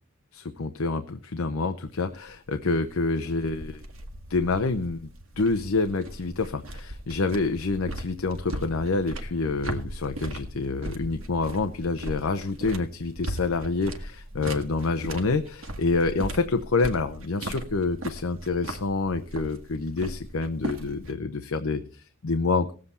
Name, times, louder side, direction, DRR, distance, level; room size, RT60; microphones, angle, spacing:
voice 1, 0.3-3.8 4.3-5.1 5.4-22.7, left 3 dB, 75° left, 8 dB, 0.7 m, -27 dB
sound 1, 1.9-21.2, right 1 dB, 75° right, 1.7 m, -38 dB
18.5 x 7.6 x 4.2 m, 0.39 s
head